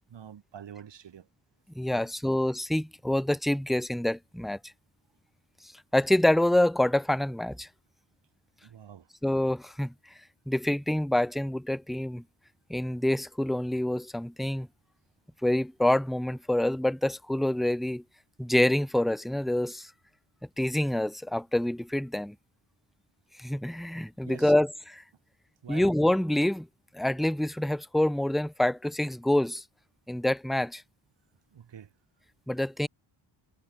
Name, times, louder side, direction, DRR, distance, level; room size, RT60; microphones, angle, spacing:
voice 1, 0.1-1.3 1.9-2.1 8.6-9.1 24.2-24.5 25.6-25.9 31.5-31.9, right 8 dB, 60° right, 2.2 m, -46 dB
voice 2, 1.8-4.6 5.9-7.7 9.2-9.9 10.5-12.2 12.7-14.7 15.4-18.0 18.4-19.9 20.6-22.3 23.4-25.0 25.7-26.7 26.9-29.6 30.1-30.8 32.5-32.9, left 1 dB, ahead, 0.4 m, -26 dB
cardioid pair, 95°, 48 cm